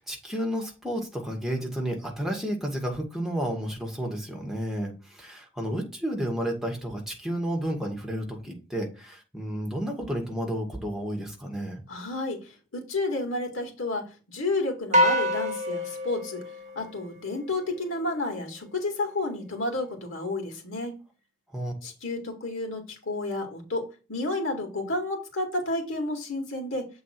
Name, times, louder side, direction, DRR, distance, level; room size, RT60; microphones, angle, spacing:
voice 1, 0.0-11.8 21.5-21.7, equal, ahead, 0 dB, 1.7 m, -31 dB
voice 2, 11.9-16.4 16.7-21.0 21.8-26.9, left 2 dB, 85° left, 3 dB, 2.3 m, -31 dB
sound 1, 14.9-17.5, left 1 dB, 35° right, 1.0 m, -26 dB
7.5 x 3.9 x 4.5 m, 0.32 s
head